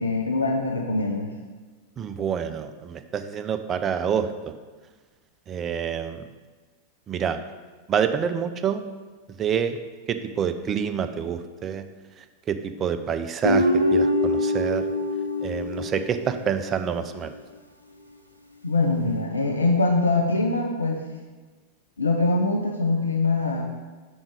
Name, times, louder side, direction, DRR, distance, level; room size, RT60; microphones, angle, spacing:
voice 1, 0.0-1.3 18.6-21.0 22.0-23.6, left 2 dB, 75° left, 3 dB, 0.4 m, -23 dB
voice 2, 2.0-4.5 5.5-6.3 7.1-7.4 7.9-8.8 9.3-9.8 10.1-11.9 12.2-14.8 15.4-17.3, right 7 dB, 25° right, 9 dB, 0.4 m, -27 dB
Guitar, 13.4-16.7, left 1 dB, 90° right, 0.4 m, -24 dB
5.9 x 3.6 x 5.0 m, 1.3 s
figure-of-eight pair, 90°, 0 cm